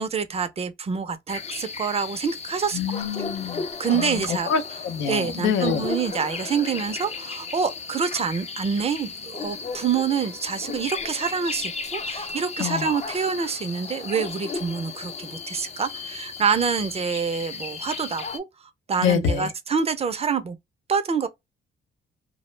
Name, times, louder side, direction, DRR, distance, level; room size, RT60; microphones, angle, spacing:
voice 1, 0.0-3.0 3.8-4.5 5.1-18.4 18.9-20.6 20.9-21.3, right 6 dB, 30° right, 0.4 m, -26 dB
sound 1, 1.3-18.4, left 4 dB, 35° left, 0.5 m, -35 dB
voice 2, 2.7-3.6 3.9-5.9 12.6-13.0 19.0-19.5, left 7 dB, 85° left, 0.5 m, -26 dB
2.3 x 2.1 x 3.0 m
cardioid pair, 90°, 20 cm